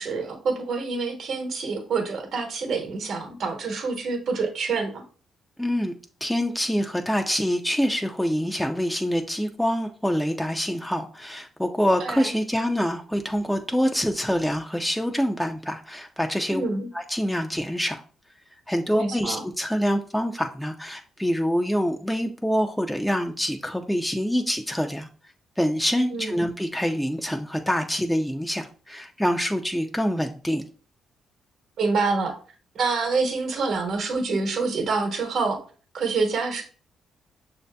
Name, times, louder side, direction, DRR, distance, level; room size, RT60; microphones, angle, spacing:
voice 1, 0.0-5.0 12.0-12.3 16.5-16.9 18.9-19.4 26.1-26.4 31.8-32.3 32.7-35.6 35.9-36.6, right 4 dB, 65° right, 3 dB, 1.1 m, -26 dB
voice 2, 5.6-5.9 6.2-16.6 16.9-18.0 18.7-25.1 25.6-30.6, equal, 5° left, 3 dB, 0.5 m, -25 dB
6.3 x 2.7 x 2.2 m, 0.39 s
hypercardioid pair, 50°, 0 cm